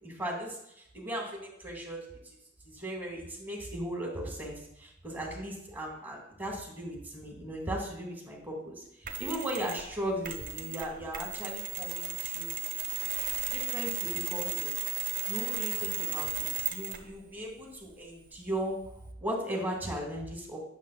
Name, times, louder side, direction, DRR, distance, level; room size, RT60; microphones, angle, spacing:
voice 1, 0.0-2.1 2.6-12.5 13.5-14.7 15.3-20.6, right 1 dB, 10° right, -1 dB, 1.2 m, -37 dB
Mechanisms, 9.1-9.9 10.2-17.1, right 7 dB, 45° right, 0.8 m, -35 dB
8.2 x 6.1 x 2.2 m, 0.77 s
head